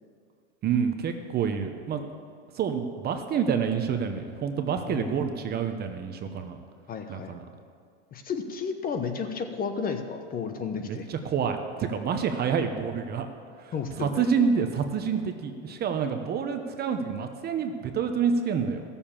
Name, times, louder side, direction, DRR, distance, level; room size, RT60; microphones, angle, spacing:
voice 1, 0.6-2.0 2.5-6.6 7.1-7.4 10.8-13.3 13.6-18.8, right 6 dB, 30° right, 6 dB, 0.9 m, -28 dB
voice 2, 4.8-5.2 6.9-7.4 8.1-11.1 13.7-14.3, left 5 dB, 25° left, 6 dB, 1.0 m, -32 dB
15.5 x 7.0 x 7.3 m, 2.2 s
supercardioid pair, 130°, 34 cm